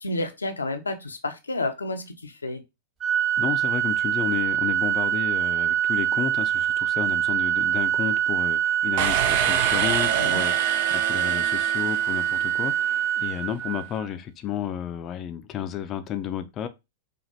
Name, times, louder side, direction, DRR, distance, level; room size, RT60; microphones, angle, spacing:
voice 1, 0.0-2.6 10.2-10.4, left 2 dB, 85° left, 0.7 m, -30 dB
Organ, 3.0-14.1, right 10 dB, 30° right, 1.6 m, -25 dB
voice 2, 3.4-16.7, left 9 dB, 30° left, 0.5 m, -32 dB
sound 1, 9.0-12.7, right 9 dB, 55° right, 0.5 m, -27 dB
5.0 x 2.5 x 2.7 m
figure-of-eight pair, 100°, 0 cm